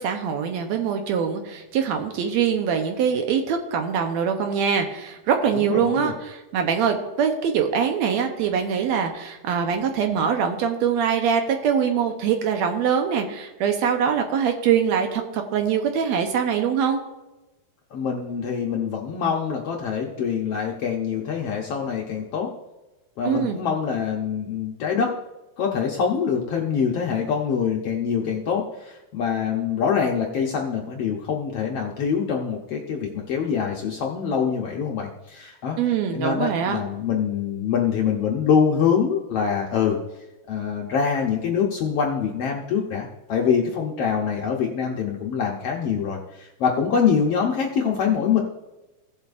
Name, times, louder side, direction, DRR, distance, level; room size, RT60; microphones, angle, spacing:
voice 1, 0.0-17.0 23.3-23.6 35.8-36.8, right 7 dB, 70° right, 4 dB, 1.9 m, -23 dB
voice 2, 5.5-6.1 17.9-22.5 23.2-25.1 25.6-35.8 36.1-40.0 40.5-48.4, left 7 dB, 70° left, 0 dB, 1.4 m, -24 dB
17.0 x 7.2 x 2.6 m, 1.0 s
omnidirectional pair, 3.7 m